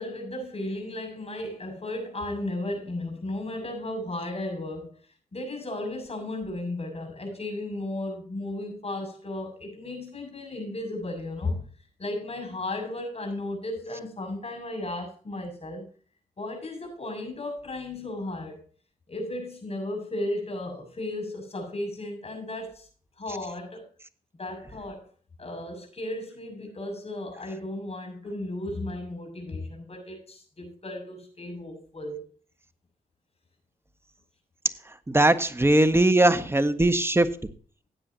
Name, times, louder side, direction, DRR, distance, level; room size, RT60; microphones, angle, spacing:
voice 1, 0.0-5.0 5.3-11.6 12.0-15.9 16.4-18.6 19.1-22.9 23.2-23.9 24.3-25.1 25.4-32.2, left 1 dB, 45° left, 3 dB, 6.7 m, -34 dB
voice 2, 35.1-37.3, right 1 dB, 15° right, 10 dB, 1.5 m, -20 dB
16.0 x 9.7 x 2.9 m, 0.42 s
cardioid pair, 60°, 15 cm